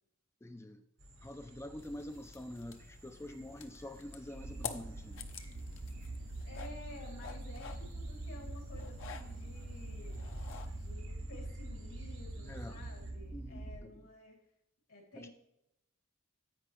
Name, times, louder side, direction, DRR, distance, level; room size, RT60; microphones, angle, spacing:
voice 1, 0.4-0.8 1.2-5.2 12.4-12.9 13.3-13.9 15.1-15.3, left 1 dB, 10° left, 7 dB, 0.4 m, -46 dB
sound 1, 1.0-13.1, equal, 65° right, 2.4 m, -53 dB
sound 2, 1.8-10.9, left 6 dB, 65° left, 0.8 m, -50 dB
sound 3, 4.3-13.8, right 2 dB, 50° right, 0.6 m, -44 dB
voice 2, 6.4-10.2 10.7-14.4 14.9-15.3, left 2 dB, 85° left, 0 dB, 2.9 m, -52 dB
10.5 x 8.3 x 3.2 m, 0.83 s
head